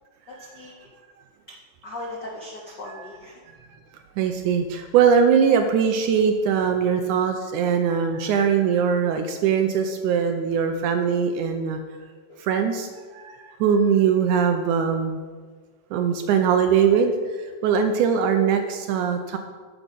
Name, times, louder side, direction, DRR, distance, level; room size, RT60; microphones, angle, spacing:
voice 1, 0.3-0.9 1.8-3.4 5.5-5.7 12.3-12.4, left 2 dB, 70° left, -3 dB, 1.0 m, -38 dB
voice 2, 4.2-11.8 12.4-15.2 15.9-17.1 17.6-19.4, right 7 dB, 80° right, 6 dB, 1.9 m, -21 dB
10.0 x 7.4 x 5.2 m, 1.5 s
omnidirectional pair, 4.0 m